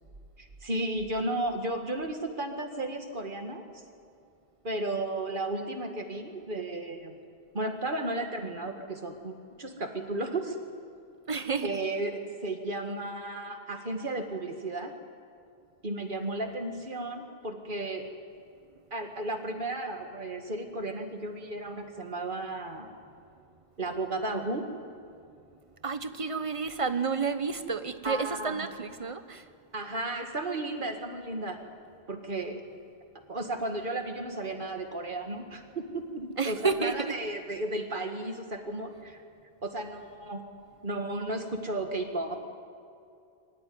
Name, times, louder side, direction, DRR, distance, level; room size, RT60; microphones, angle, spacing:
voice 1, 0.4-3.6 4.6-7.2 7.5-10.6 11.6-14.9 15.8-18.1 18.9-22.9 23.8-24.7 28.0-28.7 29.7-31.6 32.1-32.6 33.3-39.2 39.6-40.4 40.8-42.5, right 2 dB, 50° right, 5 dB, 2.0 m, -34 dB
voice 2, 11.3-11.9 25.8-29.5 36.4-37.2, right 5 dB, 30° right, 11 dB, 1.0 m, -31 dB
23.5 x 15.5 x 9.6 m, 2.5 s
omnidirectional pair, 1.1 m